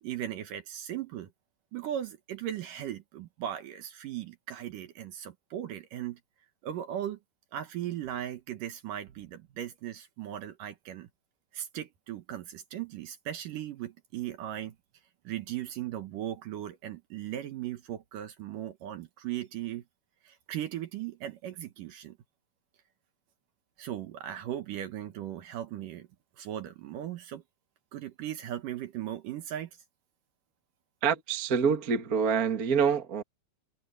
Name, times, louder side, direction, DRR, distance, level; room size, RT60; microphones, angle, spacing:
voice 1, 0.0-1.3 1.7-6.2 6.6-7.2 7.5-11.1 11.5-14.7 15.2-19.8 20.2-22.2 23.8-26.1 26.4-27.4 27.9-29.7, right 11 dB, 65° right, 2.4 m, -38 dB
voice 2, 31.0-33.2, right 6 dB, 45° right, 1.1 m, -26 dB
omnidirectional pair, 4.8 m